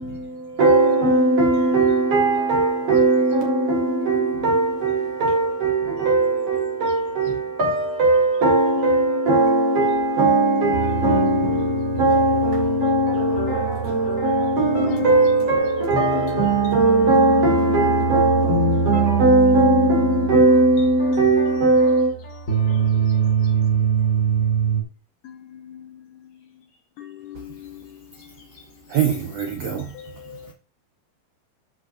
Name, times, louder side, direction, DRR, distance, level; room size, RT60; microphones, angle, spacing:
voice 1, 0.0-22.1, right 2 dB, 45° right, 2.6 m, -19 dB
sound 1, 10.7-24.8, right 6 dB, 35° left, 1.3 m, -25 dB
voice 2, 25.2-25.9 27.0-27.8 29.9-30.5, left 11 dB, 85° left, 1.8 m, -40 dB
voice 3, 28.9-29.9, right 9 dB, 75° right, 1.5 m, -23 dB
13.0 x 5.3 x 2.6 m
omnidirectional pair, 4.5 m